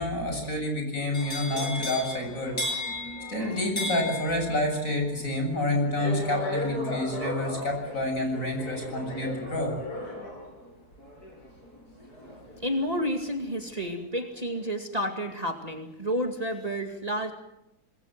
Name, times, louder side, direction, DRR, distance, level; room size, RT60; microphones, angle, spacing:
voice 1, 0.0-2.9 3.3-9.7, left 1 dB, 60° left, 3 dB, 8.0 m, -28 dB
sound 1, 1.1-13.1 13.4-13.9, left 1 dB, 80° left, 8.3 m, -36 dB
voice 2, 12.2-17.3, equal, 25° right, 4 dB, 2.4 m, -31 dB
27.0 x 21.0 x 7.7 m, 0.86 s
omnidirectional pair, 1.6 m